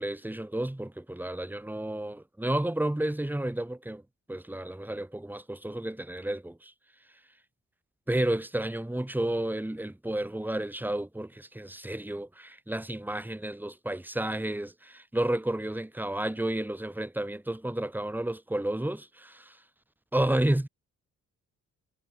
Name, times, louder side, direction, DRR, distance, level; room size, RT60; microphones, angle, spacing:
voice 1, 0.0-4.0 4.3-6.7 8.1-19.6 20.1-20.7, right 1 dB, 5° right, 2.5 m, -31 dB
cardioid pair, 90°, 30 cm